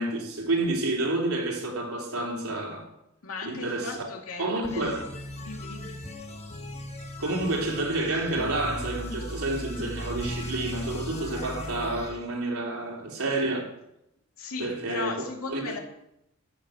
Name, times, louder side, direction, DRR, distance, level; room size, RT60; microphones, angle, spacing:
voice 1, 0.0-2.9 3.4-4.1 4.4-5.0 7.2-13.7 14.6-15.2 15.5-15.7, right 2 dB, 90° right, 3.3 m, -29 dB
voice 2, 3.2-4.9 5.4-6.0 14.4-15.8, left 3 dB, 80° left, 2.5 m, -37 dB
sound 1, 4.6-12.2, equal, 30° left, 1.4 m, -37 dB
14.0 x 6.7 x 7.8 m
head